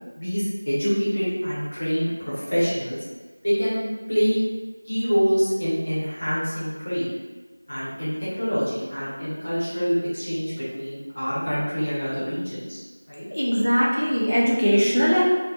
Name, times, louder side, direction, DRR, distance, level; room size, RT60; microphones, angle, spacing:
voice 1, 0.2-3.0 3.4-4.4 4.8-7.1 7.7-12.8 13.1-13.2, equal, 25° left, -12 dB, 0.7 m, -25 dB
voice 2, 13.3-15.2, equal, 80° left, -5 dB, 0.6 m, -20 dB
2.5 x 2.2 x 2.3 m, 1.3 s
figure-of-eight pair, 180°, 0 cm